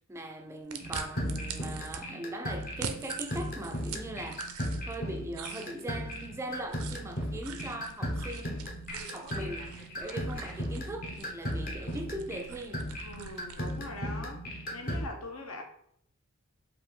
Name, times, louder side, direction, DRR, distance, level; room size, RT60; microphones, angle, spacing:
voice 1, 0.1-4.4 4.8-8.6 9.0-9.7 10.0-12.9, right 1 dB, 15° right, 0.3 m, -40 dB
sound 1, 0.7-2.0 2.6-5.0 5.3-13.9, right 7 dB, 85° right, 0.5 m, -44 dB
sound 2, 0.8-15.1, equal, 45° left, 0.9 m, -37 dB
voice 2, 13.0-15.6, left 2 dB, 75° left, 0.9 m, -42 dB
5.2 x 2.5 x 3.7 m
head